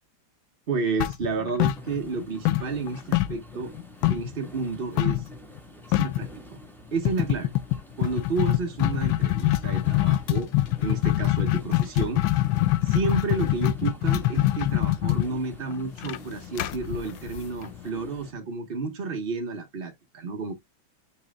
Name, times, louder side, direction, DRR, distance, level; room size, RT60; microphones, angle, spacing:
voice 1, 0.7-3.7 4.1-5.3 5.9-6.6 6.9-7.5 8.0-10.5 10.8-12.2 12.8-20.5, right 4 dB, 45° right, 0.7 m, -31 dB
sound 1, 1.0-2.2 2.5-4.4 5.0-5.3 5.6-5.7 5.9-6.3 7.1-17.9, left 16 dB, 80° left, 1.4 m, -24 dB
sound 2, 1.7-18.3, equal, ahead, 1.2 m, -48 dB
9.7 x 4.3 x 2.3 m
omnidirectional pair, 2.2 m